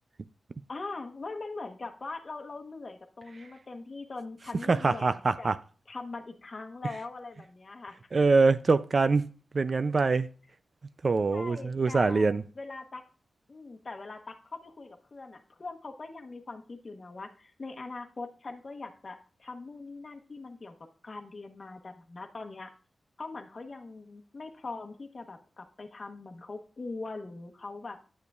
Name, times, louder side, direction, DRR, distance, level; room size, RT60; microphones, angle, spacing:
voice 1, 0.7-5.5 5.9-8.0 11.3-13.0 13.5-20.7 21.0-22.7 23.2-28.0, left 3 dB, 45° left, 1.0 m, -41 dB
voice 2, 4.7-5.6 8.1-9.3 9.5-10.3 11.0-12.4, right 4 dB, 50° right, 0.4 m, -24 dB
9.3 x 8.3 x 2.4 m
wide cardioid pair, 90°, 0 cm